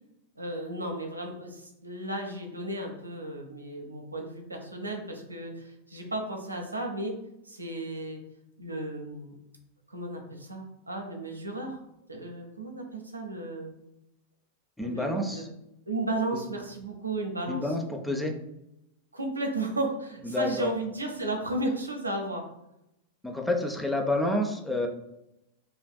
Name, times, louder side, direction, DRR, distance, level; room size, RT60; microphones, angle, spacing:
voice 1, 0.4-7.2 7.4-8.2 8.6-9.3 9.9-11.8 12.1-13.7 14.8-15.4 15.9-17.7 19.1-22.5, right 2 dB, 80° right, 2 dB, 0.7 m, -34 dB
voice 2, 14.8-15.5 16.3-16.4 17.5-18.3 20.2-20.7 23.2-24.9, left 1 dB, 5° left, 3 dB, 0.5 m, -29 dB
5.1 x 2.5 x 2.2 m, 0.86 s
figure-of-eight pair, 90°, 0 cm